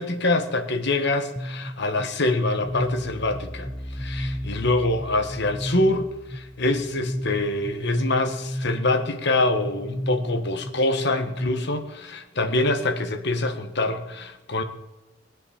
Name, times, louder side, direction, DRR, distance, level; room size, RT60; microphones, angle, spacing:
voice 1, 0.0-14.6, left 2 dB, 55° left, 1.5 m, -25 dB
sound 1, 1.4-11.5, equal, 15° left, 0.8 m, -34 dB
20.0 x 8.0 x 7.2 m
head